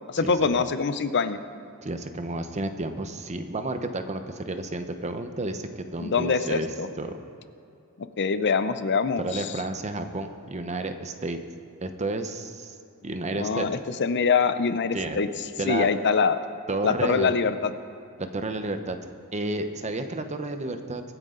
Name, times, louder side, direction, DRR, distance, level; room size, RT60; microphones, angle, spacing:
voice 1, 0.0-1.4 6.0-6.9 8.2-9.4 13.3-15.3 15.7-16.4 16.8-17.7, left 5 dB, 55° left, 11 dB, 0.6 m, -24 dB
voice 2, 1.8-6.7 7.0-7.2 9.2-11.4 11.8-12.8 13.0-13.7 14.9-15.2 15.6-15.9 16.7-17.3 18.2-19.0 19.3-21.0, right 2 dB, 30° right, 8 dB, 0.9 m, -31 dB
24.0 x 9.3 x 3.9 m, 2.6 s
head